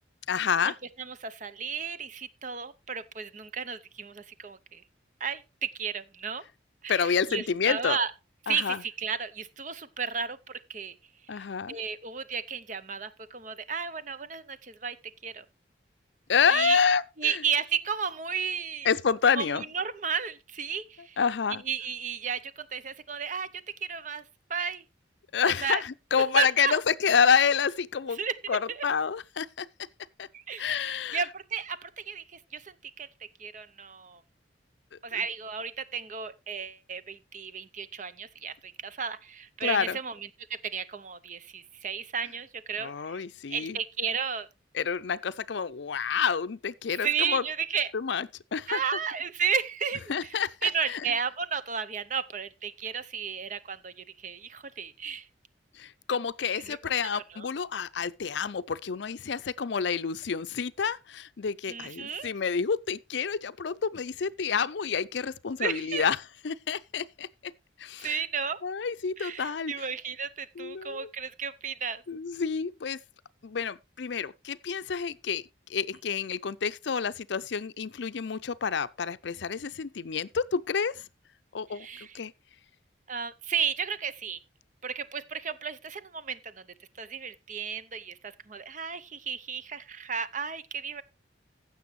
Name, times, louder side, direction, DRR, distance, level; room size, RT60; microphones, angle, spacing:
voice 1, 0.3-0.7 6.9-8.0 8.5-8.8 11.3-11.8 16.3-17.4 18.9-19.6 21.2-21.6 25.3-28.2 28.5-29.7 30.2-30.3 30.6-31.3 34.9-35.0 39.6-40.0 42.8-43.8 44.7-47.4 47.9-48.8 50.1-51.0 55.7-66.2 66.4-67.5 67.8-68.2 68.6-69.7 70.6-71.1 72.1-73.0 73.4-75.4 75.7-81.1 81.5-81.9 82.1-82.3, left 6 dB, 65° left, 0.5 m, -28 dB
voice 2, 1.0-4.8 5.2-6.4 6.8-8.1 8.4-11.0 11.3-15.4 16.5-16.8 17.2-18.9 19.3-21.2 21.5-24.2 24.5-24.8 25.4-25.8 26.3-26.8 28.2-28.9 30.3-34.2 35.0-44.5 46.1-46.2 47.0-47.9 48.7-50.3 50.6-55.3 56.6-56.8 57.1-57.5 61.7-62.3 65.6-66.1 68.0-68.6 69.2-72.0 81.7-82.2 83.1-84.4 84.8-86.7 87.0-91.0, right 6 dB, 40° right, 0.7 m, -33 dB
15.5 x 6.9 x 3.2 m
head